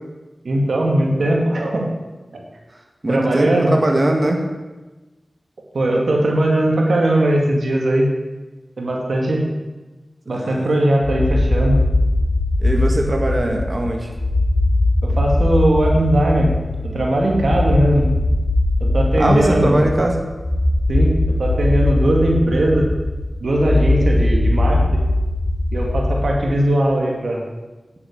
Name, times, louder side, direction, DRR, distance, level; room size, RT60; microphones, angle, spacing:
voice 1, 0.4-1.9 2.3-2.4 3.1-3.7 5.7-8.1 8.8-9.4 10.3-11.8 13.5-13.6 15.0-16.5 16.9-18.1 18.8-19.9 20.9-21.1 21.4-22.9 23.4-25.0 25.7-27.4, right 1 dB, 85° right, 0 dB, 2.3 m, -19 dB
voice 2, 3.0-4.4 10.3-10.7 12.6-14.1 19.2-20.2, right 1 dB, 45° right, 2 dB, 2.0 m, -20 dB
sound 1, 11.0-26.6, left 2 dB, 40° left, 2.4 m, -20 dB
9.4 x 8.4 x 8.5 m, 1.2 s
cardioid pair, 40°, 0 cm